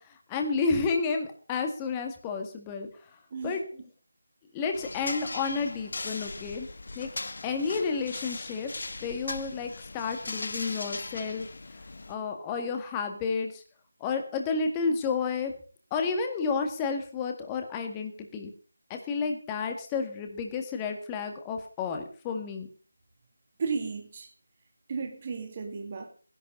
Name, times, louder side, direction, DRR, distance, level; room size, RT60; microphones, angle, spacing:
voice 1, 0.0-2.9 3.4-3.6 4.5-6.7 7.0-7.1 7.4-8.7 9.0-11.5 12.1-13.6 14.0-15.5 15.9-18.5 18.9-22.7, left 5 dB, 15° left, 1.8 m, -31 dB
sound 1, 4.7-12.1, left 3 dB, 55° left, 1.4 m, -39 dB
voice 2, 23.6-24.3 24.9-26.1, right 5 dB, 30° right, 2.2 m, -34 dB
15.5 x 11.5 x 5.3 m
figure-of-eight pair, 170°, 0 cm